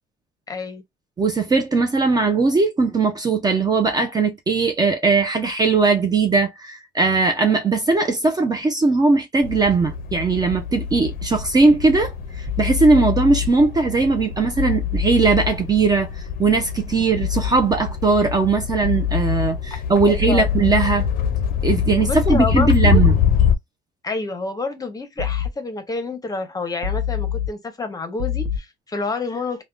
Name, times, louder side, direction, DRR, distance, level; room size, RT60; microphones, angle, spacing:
voice 1, 0.5-0.8 20.3-20.5 22.0-23.0 24.0-29.6, left 3 dB, 20° left, 0.7 m, -28 dB
voice 2, 1.2-21.1 21.6-23.2, right 4 dB, 25° right, 0.5 m, -19 dB
sound 1, 9.4-23.6, left 7 dB, 60° left, 0.5 m, -25 dB
sound 2, 12.5-13.5 14.6-15.5 17.2-17.5 18.8-19.5 20.2-21.5 22.6-23.5 25.2-25.5 26.8-27.5 28.2-28.6, left 8 dB, 60° right, 0.7 m, -24 dB
3.4 x 2.1 x 2.4 m
cardioid pair, 110°, 17 cm